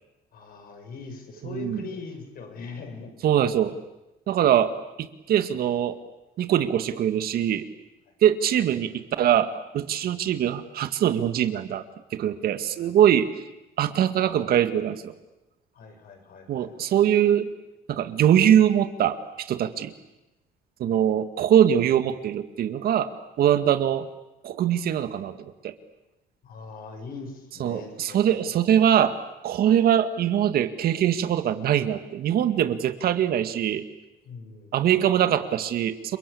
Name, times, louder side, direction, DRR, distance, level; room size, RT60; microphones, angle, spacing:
voice 1, 0.3-3.1 10.0-10.1 13.2-13.3 15.7-16.9 26.4-28.4 34.3-34.9, left 4 dB, 60° left, 5 dB, 7.1 m, -41 dB
voice 2, 1.4-1.8 3.2-3.8 4.3-4.7 5.0-6.0 6.4-7.7 8.2-11.8 12.1-13.3 13.8-15.1 16.5-17.5 17.9-19.9 20.8-23.1 23.4-24.1 24.4-25.7 27.6-29.2 29.4-33.8 34.7-36.2, right 10 dB, 65° right, 10 dB, 2.0 m, -22 dB
29.5 x 22.5 x 8.6 m, 0.97 s
cardioid pair, 110°, 17 cm